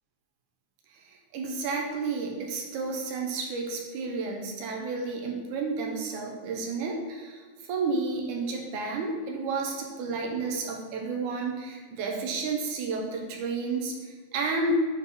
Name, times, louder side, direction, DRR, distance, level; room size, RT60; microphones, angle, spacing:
voice 1, 1.3-14.8, right 3 dB, 70° right, 1 dB, 2.1 m, -31 dB
9.0 x 3.4 x 4.1 m, 1.5 s
omnidirectional pair, 4.0 m